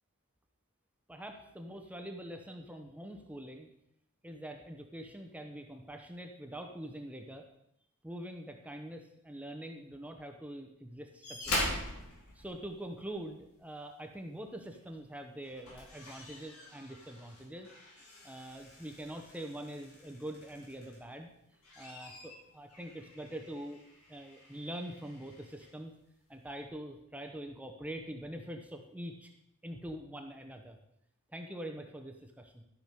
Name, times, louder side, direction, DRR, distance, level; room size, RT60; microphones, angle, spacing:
voice 1, 1.1-3.7 4.2-7.4 8.0-11.8 12.3-17.7 18.0-21.3 21.8-23.8 24.1-25.9 26.3-29.3 29.6-30.8 31.3-32.6, right 1 dB, 5° right, 4 dB, 0.8 m, -44 dB
sound 1, 11.2-13.2 14.7-14.9 15.4-21.1 21.5-25.7 26.6-26.7, left 1 dB, 85° left, 3.7 m, -43 dB
12.5 x 6.1 x 5.2 m, 0.76 s
head